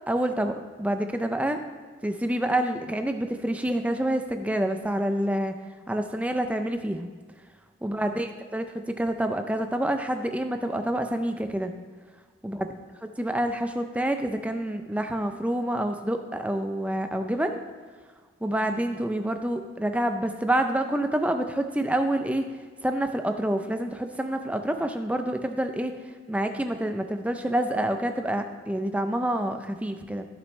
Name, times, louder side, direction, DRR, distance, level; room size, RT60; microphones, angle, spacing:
voice 1, 0.1-1.6 2.0-5.6 5.9-7.1 7.8-11.7 12.4-12.7 13.2-17.6 18.4-22.5 22.8-25.9 26.3-30.3, right 1 dB, 5° right, 6 dB, 0.5 m, -27 dB
14.0 x 6.6 x 3.2 m, 1.5 s
head